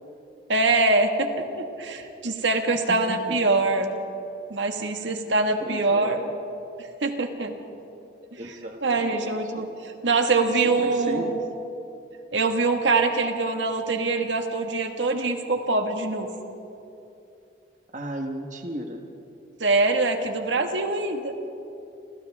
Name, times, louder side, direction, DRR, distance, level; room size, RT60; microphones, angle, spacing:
voice 1, 0.5-3.9 4.5-6.2 7.0-7.5 8.8-9.7 10.0-11.4 12.3-16.3 19.6-21.3, right 3 dB, 85° right, 4 dB, 1.8 m, -24 dB
voice 2, 2.9-3.4 5.0-5.3 5.6-6.3 8.4-9.7 10.3-11.4 17.9-19.0, right 1 dB, 40° right, 3 dB, 1.4 m, -35 dB
29.5 x 26.5 x 3.6 m, 2.8 s
head